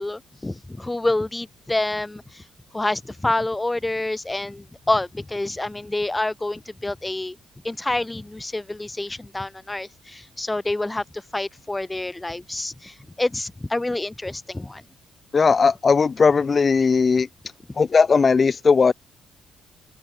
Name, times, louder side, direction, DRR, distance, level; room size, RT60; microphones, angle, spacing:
voice 1, 0.0-2.4 2.7-7.4 7.6-14.8, left 2 dB, 15° left, 1.0 m, -27 dB
voice 2, 15.3-17.3 17.8-18.9, left 5 dB, 35° left, 0.3 m, -17 dB
cardioid pair, 90°, 0 cm